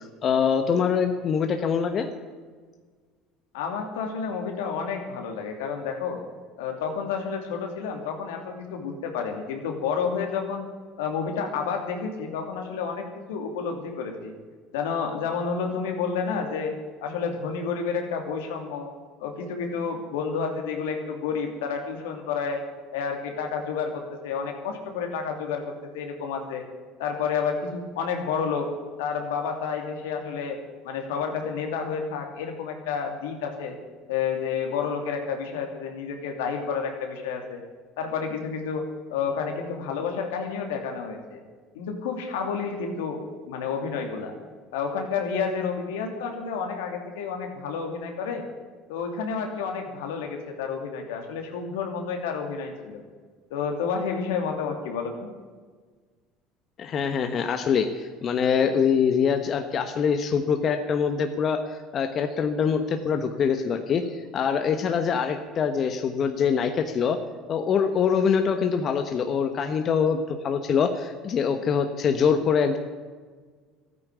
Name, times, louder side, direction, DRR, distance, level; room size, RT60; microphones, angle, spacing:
voice 1, 0.2-2.1 56.8-61.6 61.9-67.2 67.5-72.8, left 6 dB, 45° left, 7 dB, 1.3 m, -24 dB
voice 2, 3.5-6.2 6.6-10.6 11.0-14.3 14.7-16.7 17.0-18.9 19.2-22.6 22.9-26.6 27.0-28.7 29.0-30.6 30.8-33.8 34.1-37.6 38.0-38.8 39.1-41.4 41.7-44.3 44.7-48.4 48.9-53.0 53.5-55.3, left 6 dB, 90° left, 4 dB, 2.7 m, -30 dB
13.5 x 9.4 x 9.4 m, 1.5 s
supercardioid pair, 90°, 0 cm